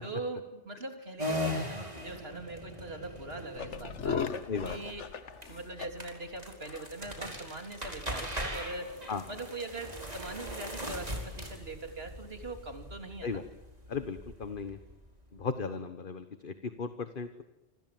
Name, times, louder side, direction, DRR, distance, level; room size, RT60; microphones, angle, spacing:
voice 1, 0.0-4.2 4.7-5.1 5.5-9.0 9.3-13.4, right 2 dB, 60° right, 5 dB, 3.7 m, -41 dB
sound 1, 1.2-15.4, equal, 35° right, 4.9 m, -40 dB
sound 2, 3.6-5.9 6.2-6.3 6.6-6.9 7.2-7.5 8.1-8.2 8.7-8.9, left 6 dB, 90° left, 1.6 m, -37 dB
voice 2, 13.9-14.8 15.3-17.4, left 5 dB, 50° left, 9 dB, 1.4 m, -36 dB
27.5 x 26.0 x 7.7 m, 0.99 s
omnidirectional pair, 1.2 m